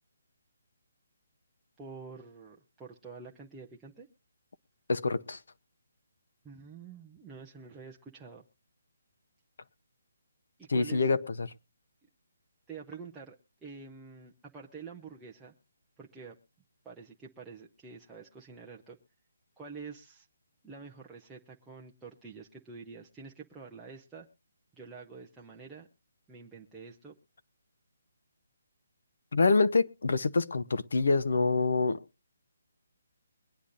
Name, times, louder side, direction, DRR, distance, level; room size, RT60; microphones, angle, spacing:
voice 1, 1.8-4.1 6.4-8.4 10.6-11.1 12.7-15.5 16.0-16.4 16.8-19.0 19.6-20.3 20.6-24.3 24.7-25.9 26.3-27.2, right 5 dB, 5° right, 0.6 m, -47 dB
voice 2, 4.9-5.4 10.7-11.5 29.3-32.0, left 3 dB, 60° left, 0.8 m, -26 dB
22.5 x 10.0 x 2.6 m
hypercardioid pair, 180°, 0 cm